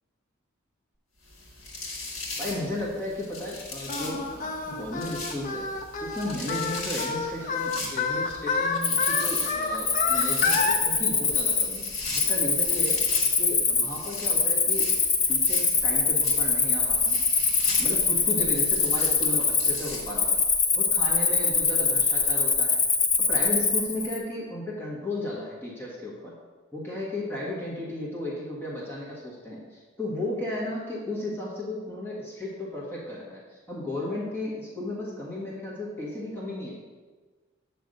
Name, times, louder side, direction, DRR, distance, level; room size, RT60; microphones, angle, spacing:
sound 1, 1.3-20.5, left 2 dB, 65° left, 2.1 m, -39 dB
voice 1, 2.4-5.7 6.0-13.0 13.4-15.0 15.3-17.2 17.8-20.4 20.7-22.8 23.2-26.3 26.7-36.8, left 1 dB, 10° left, -6 dB, 1.4 m, -34 dB
Singing, 3.9-10.8, left 4 dB, 40° left, 0.6 m, -29 dB
Cricket, 8.8-24.2, left 4 dB, 80° left, 1.1 m, -24 dB
8.0 x 3.4 x 6.4 m, 1.4 s
head